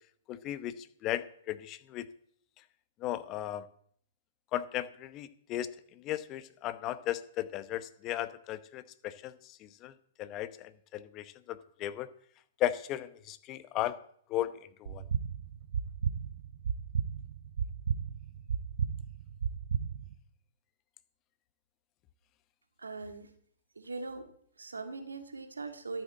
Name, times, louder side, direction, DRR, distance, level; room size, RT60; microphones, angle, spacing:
voice 1, 0.3-2.1 3.0-3.6 4.5-12.1 12.6-14.0 14.3-14.5 14.8-15.1, left 13 dB, 35° left, 14 dB, 0.9 m, -36 dB
sound 1, 14.8-20.2, right 7 dB, 70° right, 0.9 m, -34 dB
voice 2, 22.8-23.3 23.8-26.0, right 3 dB, 90° right, 7 dB, 2.0 m, -41 dB
13.0 x 7.2 x 7.7 m, 0.62 s
hypercardioid pair, 120°, 0 cm